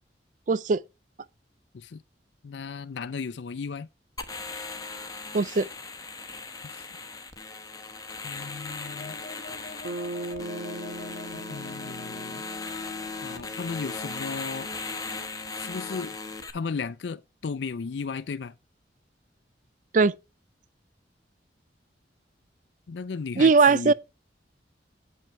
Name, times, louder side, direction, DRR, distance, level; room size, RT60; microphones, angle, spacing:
voice 1, 0.5-0.8 5.3-5.7 19.9-20.1 23.4-23.9, right 4 dB, 45° right, 0.4 m, -19 dB
voice 2, 2.4-3.9 6.7-6.8 8.2-9.2 11.3-12.4 13.2-14.7 15.6-16.2 16.5-18.5 22.9-23.9, left 5 dB, 80° left, 0.4 m, -35 dB
sound 1, 4.2-16.5, left 3 dB, 20° left, 1.0 m, -38 dB
sound 2, 8.7-13.5, left 3 dB, 50° left, 0.8 m, -47 dB
Bass guitar, 9.8-13.9, right 2 dB, 80° right, 1.3 m, -40 dB
9.0 x 5.5 x 4.5 m
head